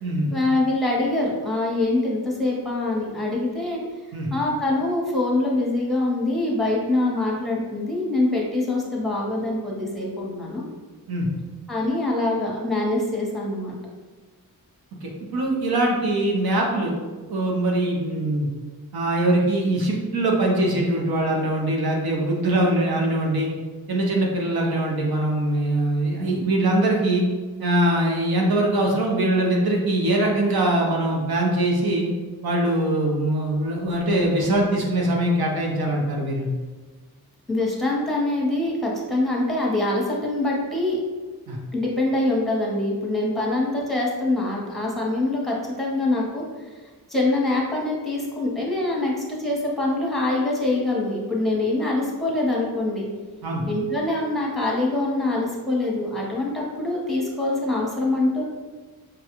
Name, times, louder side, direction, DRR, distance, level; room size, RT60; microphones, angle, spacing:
voice 1, 0.3-3.8 4.3-10.6 11.7-13.7 37.5-41.0 41.7-46.8 47.1-53.1 53.7-58.4, left 2 dB, ahead, -3 dB, 0.9 m, -24 dB
voice 2, 15.0-16.9 17.3-18.5 18.9-23.5 23.9-27.2 27.6-32.1 32.4-36.5 41.5-41.6 53.4-53.6, right 1 dB, 80° right, -1 dB, 0.9 m, -22 dB
5.1 x 2.3 x 2.9 m, 1.3 s
wide cardioid pair, 130°, 36 cm